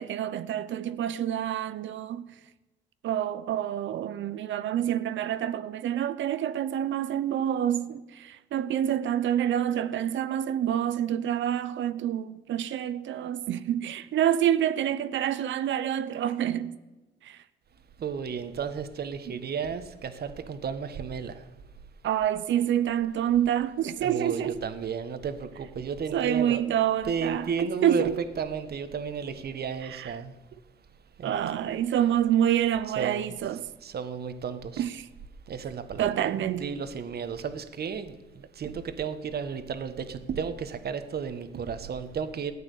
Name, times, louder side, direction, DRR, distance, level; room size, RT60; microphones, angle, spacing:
voice 1, 0.0-2.3 3.0-16.8 17.2-17.4 22.0-24.6 26.1-28.2 29.9-30.1 31.2-33.7 34.8-35.0 36.0-36.7, right 10 dB, 70° right, 0.8 m, -27 dB
voice 2, 18.0-21.5 24.0-26.6 27.0-28.1 28.4-30.3 31.2-31.4 32.9-33.3 33.8-34.9 35.5-36.2 36.6-42.5, right 6 dB, 55° right, 1.4 m, -33 dB
14.0 x 8.9 x 8.4 m
cardioid pair, 90°, 20 cm